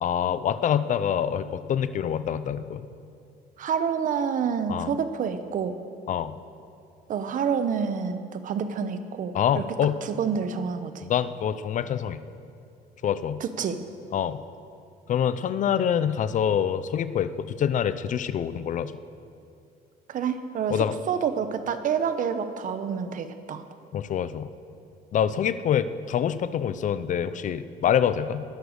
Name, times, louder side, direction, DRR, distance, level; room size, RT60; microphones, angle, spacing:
voice 1, 0.0-2.8 4.7-4.9 6.1-6.3 9.3-10.0 11.0-12.2 13.0-13.4 14.1-14.4 15.1-18.9 20.7-20.9 23.9-24.5 25.1-28.4, left 9 dB, 50° left, 14 dB, 0.6 m, -26 dB
voice 2, 3.6-5.8 7.1-9.6 10.0-11.0 13.4-13.8 20.1-23.6, right 7 dB, 50° right, 10 dB, 0.9 m, -28 dB
19.5 x 6.8 x 6.4 m, 2.5 s
cardioid pair, 110°, 17 cm